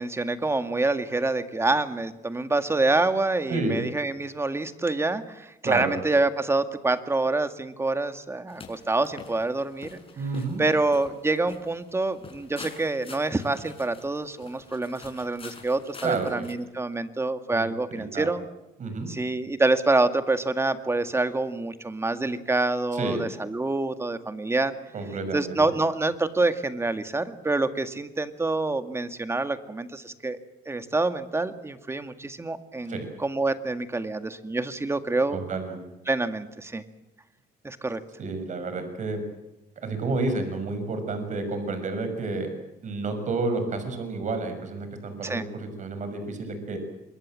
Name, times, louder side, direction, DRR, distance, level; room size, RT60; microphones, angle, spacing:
voice 1, 0.0-10.0 10.6-18.4 19.1-24.7 25.3-30.4 30.7-35.4 36.1-36.8 37.6-38.0 45.2-45.4, right 2 dB, 15° right, 9 dB, 2.0 m, -26 dB
voice 2, 3.5-3.9 5.6-6.0 10.2-10.6 16.0-16.3 17.5-17.7 17.9-18.3 18.8-19.1 22.9-23.3 24.9-25.6 32.8-33.1 35.3-35.8 38.2-39.2 39.8-42.5 42.8-46.8, right 3 dB, 45° right, 8 dB, 6.2 m, -30 dB
sound 1, 8.5-16.5, left 5 dB, 35° left, 5.9 m, -47 dB
26.5 x 22.0 x 7.6 m, 0.95 s
cardioid pair, 110°, 17 cm